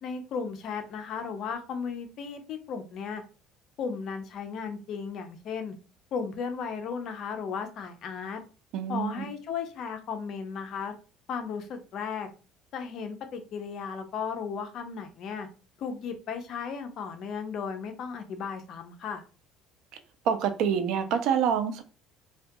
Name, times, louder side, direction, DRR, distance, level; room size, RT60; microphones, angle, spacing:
voice 1, 0.0-3.2 3.8-5.7 6.1-8.4 8.9-10.9 11.3-12.3 12.7-15.5 15.8-19.2, left 6 dB, 50° left, 6 dB, 0.4 m, -35 dB
voice 2, 8.7-9.3 20.3-21.8, right 7 dB, 70° right, 8 dB, 0.4 m, -26 dB
2.2 x 2.2 x 2.6 m, 0.34 s
cardioid pair, 135°, 0 cm